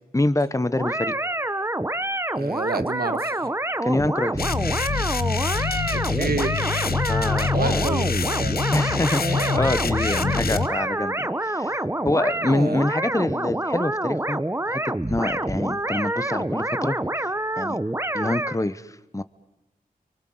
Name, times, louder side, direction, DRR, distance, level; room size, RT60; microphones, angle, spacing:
voice 1, 0.1-1.1 3.8-4.4 7.1-7.9 8.7-14.4 14.7-17.3 17.6-17.8 18.1-19.2, left 2 dB, 20° left, 14 dB, 1.1 m, -26 dB
sound 1, 0.7-18.6, right 1 dB, 15° right, 1.0 m, -27 dB
voice 2, 2.4-3.5 6.2-6.5 7.5-8.6 9.3-9.6 12.4-12.8, right 4 dB, 85° right, 11 dB, 1.5 m, -29 dB
sound 2, 4.4-10.7, left 5 dB, 80° left, 0.9 m, -25 dB
30.0 x 24.0 x 7.9 m, 1.0 s
wide cardioid pair, 55°, 15 cm